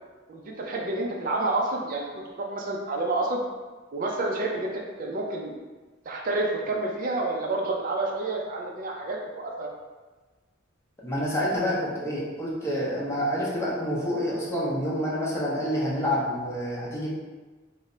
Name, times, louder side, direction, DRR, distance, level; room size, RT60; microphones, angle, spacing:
voice 1, 0.3-3.4 3.9-5.5 6.1-9.7, right 2 dB, 45° right, -1 dB, 0.4 m, -29 dB
voice 2, 11.0-17.1, equal, 15° left, -6 dB, 0.7 m, -28 dB
3.1 x 2.1 x 3.7 m, 1.3 s
head